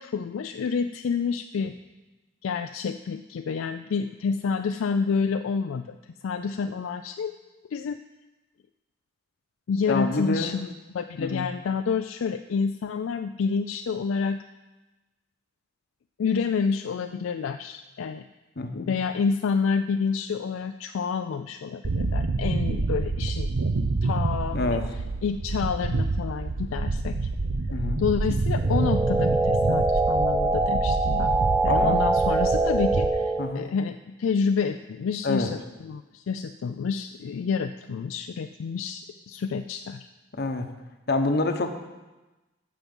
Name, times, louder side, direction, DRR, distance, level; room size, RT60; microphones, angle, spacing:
voice 1, 0.0-1.7 2.4-6.0 6.2-7.3 7.7-8.0 9.7-14.4 16.2-18.2 18.7-23.5 24.0-24.8 25.2-27.2 28.0-31.4 31.6-40.1, left 5 dB, 75° left, 8 dB, 0.4 m, -28 dB
voice 2, 9.9-10.6 11.2-11.5 18.6-19.0 24.5-24.9 27.7-28.0 31.7-32.0 33.4-33.7 35.2-35.5 40.3-40.7 41.1-41.7, left 2 dB, 50° left, 7 dB, 0.9 m, -27 dB
sound 1, 21.8-33.1, right 3 dB, 90° right, 0.7 m, -27 dB
sound 2, 28.6-33.6, right 3 dB, 10° right, 0.6 m, -24 dB
15.0 x 6.0 x 5.3 m, 1.1 s
head